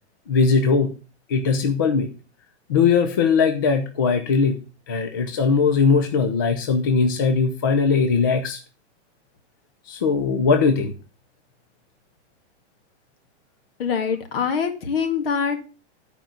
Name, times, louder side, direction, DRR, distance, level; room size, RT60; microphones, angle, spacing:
voice 1, 0.3-0.9 1.3-2.1 2.7-4.6 4.9-8.6 9.9-10.9, left 5 dB, 20° left, 6 dB, 0.3 m, -20 dB
voice 2, 13.8-15.6, left 6 dB, 55° left, 6 dB, 1.8 m, -24 dB
9.1 x 5.0 x 5.8 m, 0.35 s
supercardioid pair, 170°, 34 cm